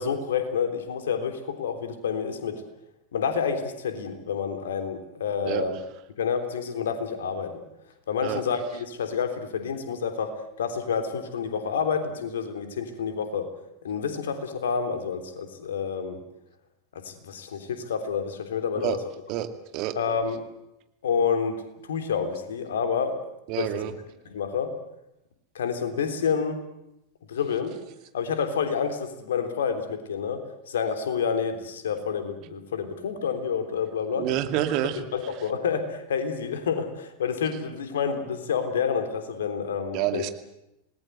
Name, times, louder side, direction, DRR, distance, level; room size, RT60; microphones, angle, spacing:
voice 1, 0.0-2.6 3.1-5.8 6.2-7.6 8.1-13.5 13.8-16.2 17.0-19.0 19.9-20.4 21.0-21.5 21.9-23.2 23.6-23.7 24.2-24.8 25.5-26.6 27.3-27.7 28.1-34.3 35.1-40.2, left 6 dB, 70° left, 7 dB, 3.4 m, -28 dB
voice 2, 19.3-20.0 23.5-23.9 34.2-35.0 39.9-40.3, right 13 dB, 45° right, 9 dB, 2.3 m, -28 dB
27.0 x 19.5 x 8.0 m, 0.87 s
figure-of-eight pair, 90°, 0 cm